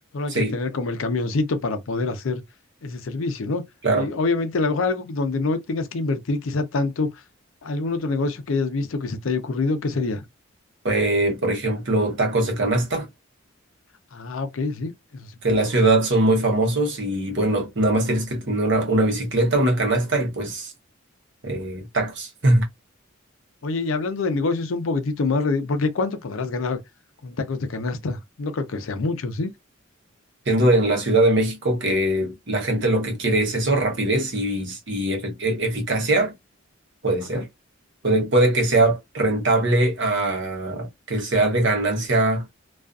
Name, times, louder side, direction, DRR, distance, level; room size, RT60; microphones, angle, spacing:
voice 1, 0.1-2.4 2.8-3.6 3.9-7.1 7.6-10.2 14.1-15.6 23.6-26.8 27.2-29.5 37.3-37.4, left 3 dB, 80° left, 0.5 m, -26 dB
voice 2, 10.8-13.1 15.4-20.7 21.4-22.7 30.5-36.3 37.0-37.5 38.0-42.4, right 2 dB, 60° right, 0.9 m, -21 dB
2.4 x 2.3 x 2.4 m
head